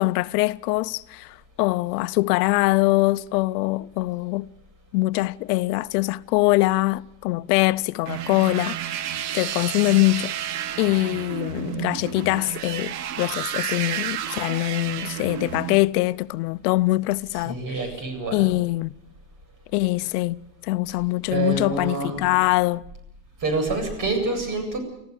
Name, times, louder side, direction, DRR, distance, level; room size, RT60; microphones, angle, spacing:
voice 1, 0.0-4.5 4.9-10.3 10.8-17.6 18.3-18.9 19.7-20.4 20.6-22.8, left 20 dB, 75° left, 0.7 m, -23 dB
sound 1, 8.1-15.8, right 10 dB, 75° right, 1.5 m, -31 dB
voice 2, 17.3-18.4 20.9-21.0 21.3-22.3 23.4-24.8, right 3 dB, 40° right, 8.0 m, -27 dB
25.0 x 15.0 x 8.1 m
supercardioid pair, 120°, 48 cm